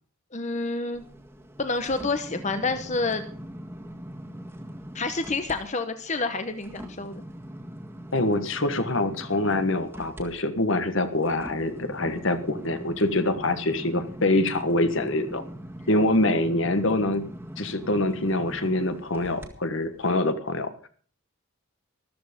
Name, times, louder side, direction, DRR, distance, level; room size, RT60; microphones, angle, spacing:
voice 1, 0.3-1.0 1.6-3.2 4.9-7.2, left 3 dB, 35° left, 9 dB, 1.0 m, -28 dB
sound 1, 0.9-5.6 6.0-19.5 20.0-20.1, equal, 10° right, 1.8 m, -41 dB
voice 2, 8.1-15.4 15.9-17.2 17.6-20.7, left 2 dB, 60° left, 10 dB, 1.5 m, -25 dB
14.0 x 13.0 x 5.2 m, 0.43 s
head